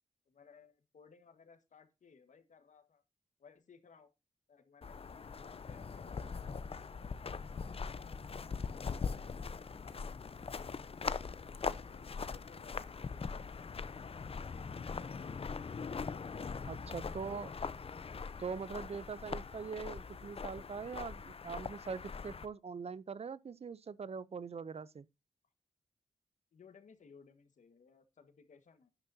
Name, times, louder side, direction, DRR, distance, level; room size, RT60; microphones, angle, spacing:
voice 1, 0.3-3.0 3.4-4.1 4.5-5.1 5.3-6.3 7.3-10.6 11.1-13.4 13.9-15.8 16.9-17.4 26.5-28.9, left 5 dB, 80° left, 1.6 m, -61 dB
sound 1, 4.8-22.5, left 5 dB, 50° left, 0.6 m, -42 dB
voice 2, 16.7-17.5 18.4-25.1, right 5 dB, 55° right, 0.6 m, -42 dB
11.0 x 9.8 x 2.7 m
cardioid pair, 60°, 13 cm